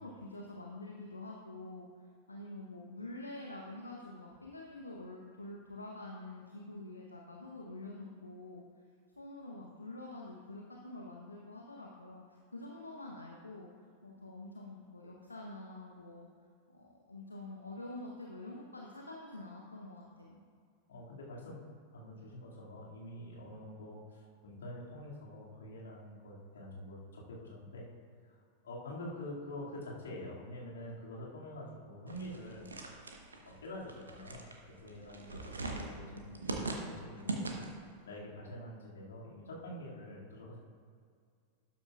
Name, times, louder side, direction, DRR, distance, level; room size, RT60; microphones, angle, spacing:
voice 1, 0.0-8.6 9.2-13.7 14.0-16.3 16.7-20.4, left 2 dB, 80° left, -1 dB, 0.9 m, -47 dB
voice 2, 20.9-21.6 21.9-27.9 28.2-28.4 28.6-32.7 33.4-37.5 38.0-40.6, left 1 dB, 65° left, -4 dB, 2.2 m, -46 dB
sound 1, 32.1-37.9, right 2 dB, 75° right, 1.1 m, -41 dB
12.5 x 9.5 x 2.4 m, 2.2 s
figure-of-eight pair, 90°, 0 cm